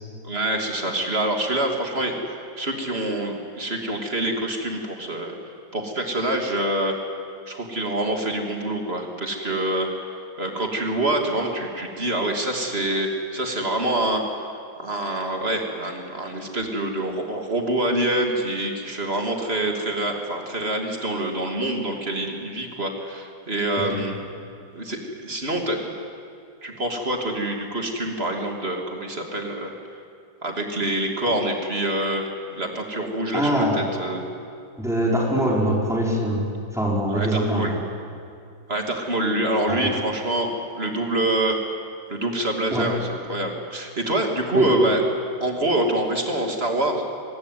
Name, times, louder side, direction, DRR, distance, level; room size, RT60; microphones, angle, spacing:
voice 1, 0.2-5.3 5.7-7.0 7.5-14.2 14.8-24.1 24.7-25.9 26.6-29.7 30.4-34.3 37.1-37.7 38.7-41.6 42.1-45.0 45.4-47.0, right 1 dB, 35° right, 2 dB, 3.0 m, -26 dB
voice 2, 33.3-33.9 34.8-36.4 36.7-37.8 39.7-39.9 42.7-42.9 44.5-44.9, equal, ahead, -3 dB, 5.3 m, -23 dB
25.0 x 20.5 x 9.4 m, 2.4 s
omnidirectional pair, 1.9 m